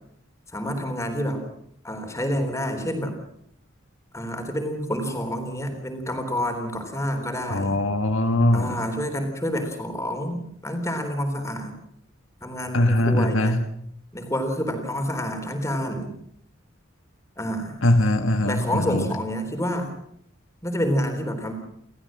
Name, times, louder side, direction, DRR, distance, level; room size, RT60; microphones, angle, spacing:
voice 1, 0.5-1.4 1.8-3.1 4.1-7.8 8.5-11.7 12.4-13.6 14.1-16.1 17.4-17.8 18.4-19.9 20.6-21.5, equal, 15° left, 5 dB, 3.6 m, -28 dB
voice 2, 7.5-8.8 12.7-13.6 17.8-19.1, left 1 dB, 70° left, 6 dB, 1.9 m, -21 dB
30.0 x 13.5 x 7.5 m, 0.72 s
head